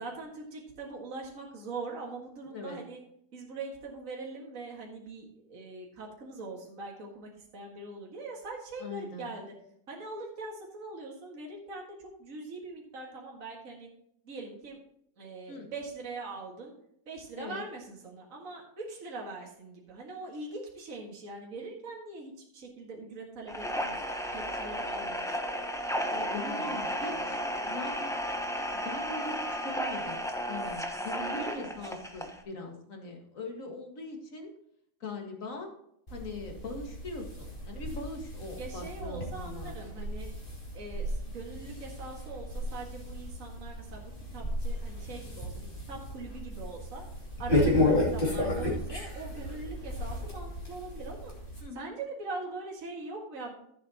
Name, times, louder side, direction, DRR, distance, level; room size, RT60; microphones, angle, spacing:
voice 1, 0.0-3.0 3.3-9.5 9.9-13.9 14.2-14.8 15.2-16.7 17.1-24.0 24.3-25.5 26.1-27.4 31.1-31.7 38.6-40.3 40.7-47.0 47.4-51.3 51.7-53.5, right 3 dB, 55° right, -1 dB, 2.2 m, -42 dB
voice 2, 8.8-9.3 15.5-15.7 17.3-17.6 26.3-28.1 28.7-34.5 35.0-35.7 36.1-39.8 47.5-48.0 51.6-52.0, left 2 dB, 55° left, 2 dB, 2.2 m, -41 dB
sound 1, 23.5-32.4, equal, 5° left, 0.7 m, -34 dB
sound 2, 36.1-51.6, left 1 dB, 30° left, 2.9 m, -33 dB
14.5 x 7.6 x 2.9 m, 0.72 s
omnidirectional pair, 1.7 m